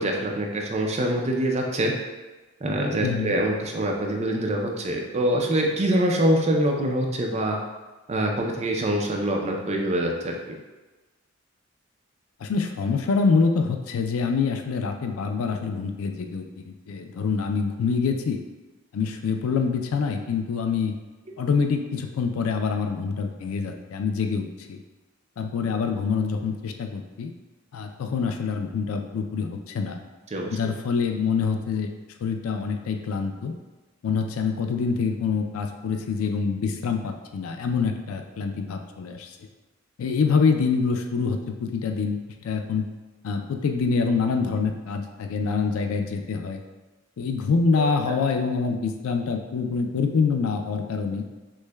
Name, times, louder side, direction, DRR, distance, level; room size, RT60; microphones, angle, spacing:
voice 1, 0.0-1.9 2.6-7.6 8.1-10.3 30.3-30.6 47.8-47.9, right 1 dB, 30° right, 0 dB, 0.5 m, -24 dB
voice 2, 3.0-3.4 12.4-18.4 18.9-21.0 21.4-24.8 25.4-27.3 27.7-30.0 30.5-31.9 32.2-33.5 34.0-39.3 40.0-42.2 42.4-42.9 43.2-46.6 47.2-51.2, left 5 dB, 90° left, 5 dB, 0.4 m, -25 dB
6.2 x 2.1 x 2.2 m, 1.2 s
head